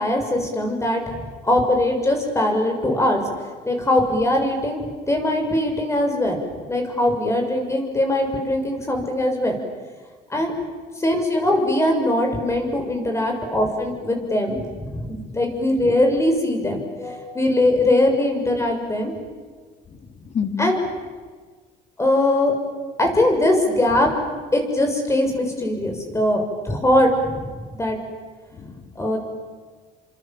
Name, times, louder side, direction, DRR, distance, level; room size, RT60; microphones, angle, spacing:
voice 1, 0.0-3.2 3.6-6.4 6.7-9.6 10.3-10.5 11.0-19.1 20.6-20.7 22.0-22.5 23.0-24.1 24.5-28.0 28.9-29.2, left 1 dB, 15° left, 3 dB, 6.7 m, -21 dB
voice 2, 19.9-20.7 25.8-26.1 28.5-29.0, left 7 dB, 40° left, 7 dB, 2.3 m, -31 dB
29.5 x 26.0 x 7.6 m, 1.5 s
cardioid pair, 110°, 17 cm